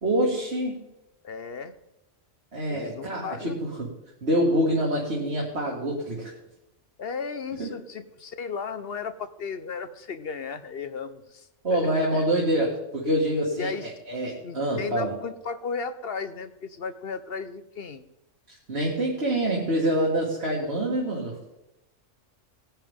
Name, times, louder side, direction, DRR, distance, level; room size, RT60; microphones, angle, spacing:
voice 1, 0.0-0.8 2.5-3.9 4.2-6.3 7.6-7.7 11.6-15.1 18.5-21.4, right 1 dB, 55° right, -3 dB, 2.4 m, -26 dB
voice 2, 1.2-1.7 2.7-3.6 7.0-12.2 13.6-13.9 14.4-18.0, left 5 dB, 55° left, 11 dB, 0.9 m, -35 dB
19.0 x 10.0 x 3.6 m, 0.89 s
omnidirectional pair, 1.3 m